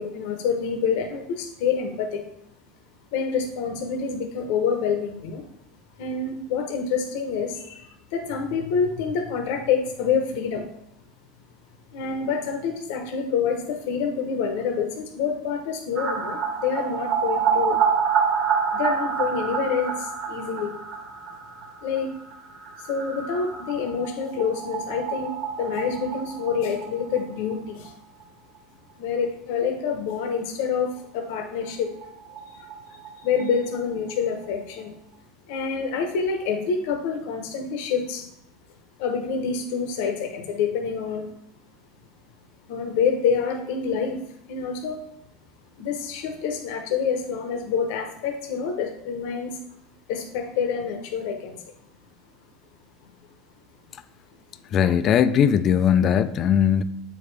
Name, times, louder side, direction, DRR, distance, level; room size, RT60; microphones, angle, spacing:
voice 1, 0.0-2.2 3.1-5.4 6.0-7.8 8.1-10.6 11.9-17.8 18.7-19.9 20.3-20.7 21.8-22.1 22.9-25.3 25.6-27.9 29.0-31.9 33.2-34.9 35.5-38.3 39.0-41.3 42.7-44.2 44.5-45.0 45.8-49.5 50.1-51.5, left 6 dB, 65° left, 4 dB, 0.9 m, -27 dB
sound 1, 16.0-27.5 27.9-28.0 28.2-28.3 31.3-31.4 31.7-31.8 32.0-33.8 34.1-34.2, right 6 dB, 40° right, 1.2 m, -28 dB
voice 2, 54.7-56.8, left 8 dB, 35° left, 13 dB, 0.4 m, -19 dB
8.1 x 5.0 x 3.3 m, 0.76 s
supercardioid pair, 155°, 0 cm